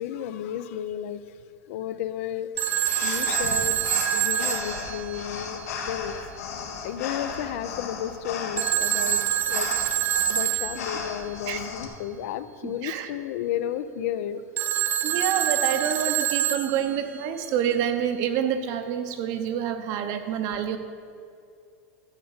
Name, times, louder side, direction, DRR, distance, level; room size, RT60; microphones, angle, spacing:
voice 1, 0.0-1.4 1.7-2.7 3.0-3.8 4.1-6.1 6.8-9.8 10.3-14.4, left 10 dB, 65° left, 12 dB, 0.5 m, -33 dB
sound 1, 2.6-11.9, left 6 dB, 85° left, 1.4 m, -36 dB
Telephone, 2.6-5.7 8.6-11.1 14.6-17.2, right 11 dB, 25° right, 0.4 m, -26 dB
voice 2, 12.6-13.1 15.0-20.8, right 9 dB, 45° right, 8 dB, 0.8 m, -27 dB
12.0 x 5.2 x 7.2 m, 2.4 s
supercardioid pair, 150°, 8 cm